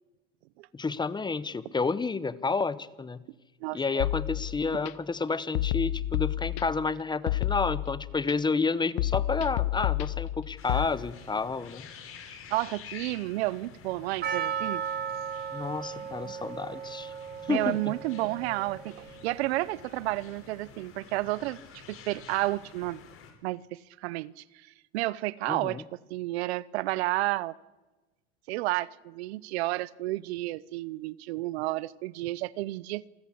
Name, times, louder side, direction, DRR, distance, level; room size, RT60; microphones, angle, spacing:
voice 1, 0.7-3.3 3.7-11.9 15.5-17.1 17.5-17.9 25.5-25.8, left 4 dB, 15° left, 0.9 m, -30 dB
voice 2, 3.6-4.0 12.5-14.8 17.5-23.0 23.4-24.4 24.9-25.8 26.1-27.5 28.5-33.0, right 18 dB, 80° right, 0.7 m, -31 dB
sound 1, 4.0-4.9 5.5-6.9 7.3-8.3 9.0-10.9, left 15 dB, 75° left, 1.0 m, -30 dB
sound 2, 10.6-23.3, left 6 dB, 45° left, 4.6 m, -49 dB
Percussion, 14.2-19.1, right 8 dB, 30° right, 1.9 m, -36 dB
27.5 x 14.5 x 8.7 m
supercardioid pair, 110°, 32 cm